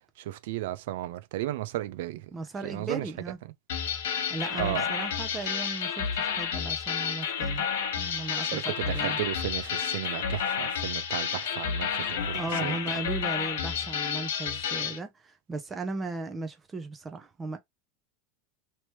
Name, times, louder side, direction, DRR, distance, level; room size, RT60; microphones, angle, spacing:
voice 1, 0.2-2.3 2.6-3.1 4.5-4.9 8.5-12.8, right 15 dB, 75° right, 0.6 m, -34 dB
voice 2, 2.3-3.4 4.3-7.6 8.0-9.2 12.3-17.6, right 3 dB, 20° right, 0.8 m, -36 dB
sound 1, 3.7-15.0, left 7 dB, 80° left, 1.1 m, -30 dB
3.2 x 2.9 x 3.1 m
supercardioid pair, 110°, 0 cm